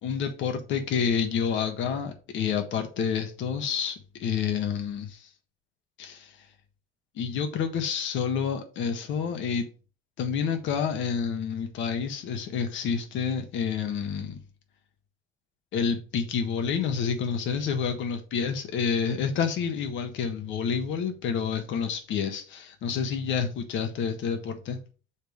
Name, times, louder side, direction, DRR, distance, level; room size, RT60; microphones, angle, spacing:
voice 1, 0.0-5.3 6.0-6.4 7.1-9.7 10.2-14.4 15.7-24.8, left 6 dB, 65° left, 1.4 m, -29 dB
7.2 x 3.5 x 5.4 m
cardioid pair, 140°, 21 cm